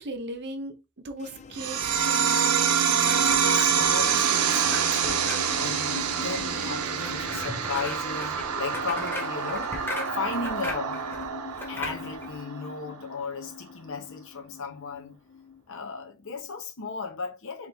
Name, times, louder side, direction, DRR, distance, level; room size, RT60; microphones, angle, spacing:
voice 1, 0.0-2.8, right 1 dB, 50° right, 0.8 m, -38 dB
sound 1, 1.1-16.6, left 5 dB, 30° left, 0.4 m, -44 dB
sound 2, 1.6-12.6, right 7 dB, 90° right, 0.6 m, -26 dB
sound 3, 3.0-12.4, left 1 dB, 10° left, 0.8 m, -39 dB
voice 2, 3.5-11.0 11.6-15.2 15.7-17.7, left 5 dB, 60° left, 0.9 m, -36 dB
3.6 x 3.2 x 4.0 m
head